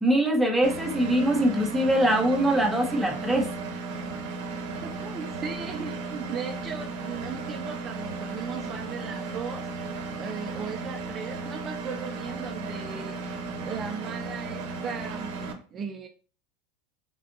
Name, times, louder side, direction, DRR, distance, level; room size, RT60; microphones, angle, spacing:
voice 1, 0.0-3.5, right 1 dB, 5° right, 0 dB, 0.9 m, -23 dB
Engine, 0.6-15.5, right 3 dB, 70° right, 0.8 m, -35 dB
voice 2, 4.8-16.1, right 6 dB, 35° right, 3 dB, 0.4 m, -38 dB
3.7 x 3.3 x 2.5 m, 0.38 s
hypercardioid pair, 100°, 0 cm